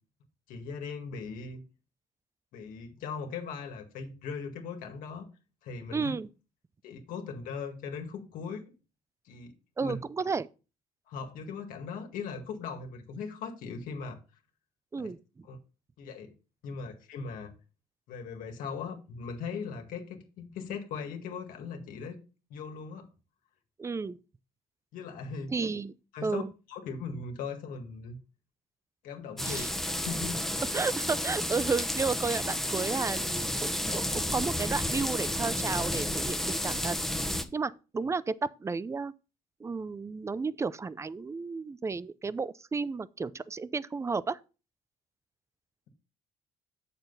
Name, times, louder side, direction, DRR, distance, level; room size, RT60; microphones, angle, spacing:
voice 1, 0.5-1.6 2.5-5.3 5.6-6.1 6.8-8.6 9.2-9.5 9.8-10.0 11.1-14.2 15.0-15.1 15.4-15.6 16.0-16.3 16.6-17.5 18.1-22.2 22.5-23.1 24.9-25.7 26.1-26.4 26.7-28.2 29.0-29.6 29.9-30.5, left 5 dB, 80° left, 1.9 m, -39 dB
voice 2, 5.9-6.3 9.8-10.5 14.9-15.5 23.8-24.2 25.5-25.9 26.2-26.5 29.4-29.7 30.7-37.0 37.5-39.1 39.6-44.4, right 4 dB, 20° right, 0.5 m, -32 dB
sound 1, 29.4-37.4, left 1 dB, ahead, 1.0 m, -31 dB
7.9 x 6.7 x 4.0 m
cardioid pair, 90°, 14 cm